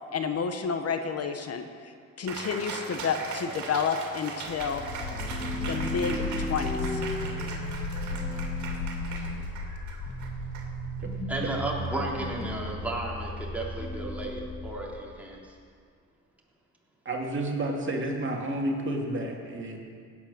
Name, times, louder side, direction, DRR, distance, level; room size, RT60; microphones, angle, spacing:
voice 1, 0.1-1.9 2.2-4.8 5.1-5.2 5.6-7.0, left 5 dB, 55° left, 7 dB, 1.1 m, -30 dB
Cheering, 2.3-11.2, right 4 dB, 65° right, 2.6 m, -40 dB
sound 1, 4.5-15.1, left 2 dB, 35° left, 2.7 m, -34 dB
voice 2, 11.3-15.5, right 1 dB, 5° right, -4 dB, 3.5 m, -34 dB
voice 3, 17.0-19.8, right 1 dB, 40° right, 0 dB, 2.4 m, -30 dB
16.5 x 9.3 x 6.8 m, 2.2 s
cardioid pair, 90°, 30 cm